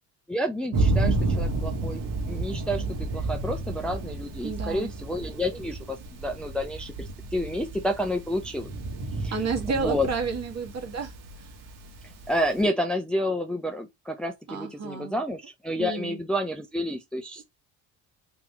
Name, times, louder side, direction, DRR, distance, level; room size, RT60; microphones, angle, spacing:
voice 1, 0.3-2.8 3.1-8.7 9.2-9.3 9.7-10.1 12.3-17.4, equal, ahead, 0.7 m, -30 dB
Thunder, 0.7-12.6, right 2 dB, 65° right, 1.5 m, -31 dB
voice 2, 4.4-4.9 9.3-11.1 14.5-15.2 15.8-16.2, right 5 dB, 40° right, 1.5 m, -30 dB
3.7 x 2.9 x 3.1 m
supercardioid pair, 80°, 42 cm